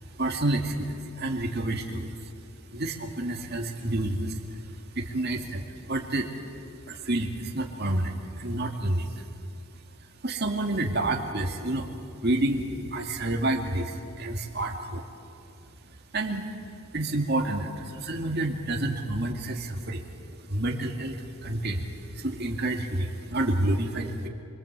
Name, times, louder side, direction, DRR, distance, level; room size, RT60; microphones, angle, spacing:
voice 1, 0.0-2.3 2.7-6.3 6.9-9.3 10.2-11.9 12.2-15.0 16.1-20.1 20.5-24.3, right 1 dB, 50° right, 2 dB, 2.3 m, -29 dB
26.0 x 24.0 x 8.2 m, 2.5 s
head